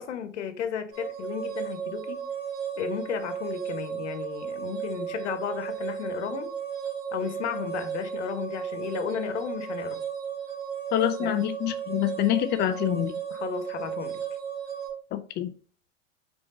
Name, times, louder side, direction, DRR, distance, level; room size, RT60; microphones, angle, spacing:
voice 1, 0.0-2.2 2.8-6.5 7.1-10.0 11.2-11.3 13.3-14.2, left 8 dB, 65° left, 1.2 m, -34 dB
sound 1, 0.9-14.9, right 8 dB, 35° right, 2.4 m, -34 dB
voice 2, 10.9-13.1 15.1-15.5, left 13 dB, 30° left, 0.5 m, -26 dB
5.2 x 4.6 x 4.2 m
hypercardioid pair, 100°, 37 cm